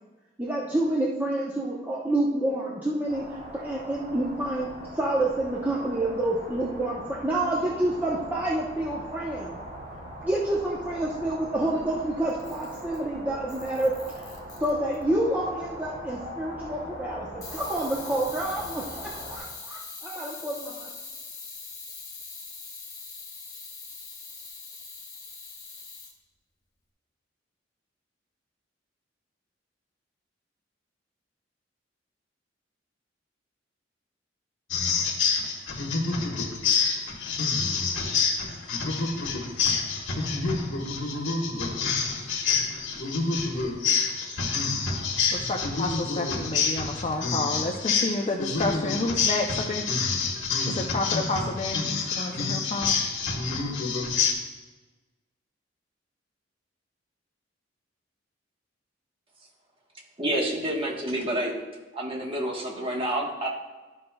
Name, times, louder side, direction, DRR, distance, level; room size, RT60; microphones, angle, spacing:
voice 1, 0.4-4.7 4.9-9.6 10.2-14.2 14.6-20.9, right 1 dB, 10° right, -6 dB, 0.8 m, -28 dB
sound 1, 3.1-19.4, right 1 dB, 60° right, 1.9 m, -41 dB
Camera, 12.3-13.1 13.5-15.0 17.4-26.1, left 4 dB, 20° left, 1.3 m, -42 dB
sound 2, 34.7-54.3, left 5 dB, 85° left, 1.3 m, -27 dB
voice 2, 45.3-49.9 50.7-53.0, left 2 dB, 35° left, 1 dB, 0.5 m, -30 dB
voice 3, 60.2-61.5 61.9-63.5, right 1 dB, 30° right, -1 dB, 1.2 m, -28 dB
12.0 x 5.4 x 2.3 m, 1.2 s
head